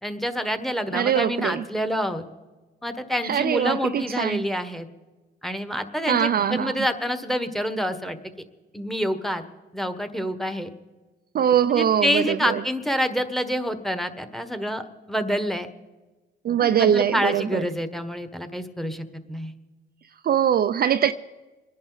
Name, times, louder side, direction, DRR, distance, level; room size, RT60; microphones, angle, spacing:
voice 1, 0.0-2.3 2.8-4.9 5.4-8.2 8.7-9.4 9.7-10.7 11.7-15.7 16.6-19.5, equal, ahead, 1.3 m, -27 dB
voice 2, 0.9-1.6 3.2-4.4 6.1-6.7 11.3-12.6 16.4-17.6 20.2-21.1, right 9 dB, 50° right, 0.5 m, -22 dB
25.0 x 11.0 x 4.0 m
cardioid pair, 90°, 20 cm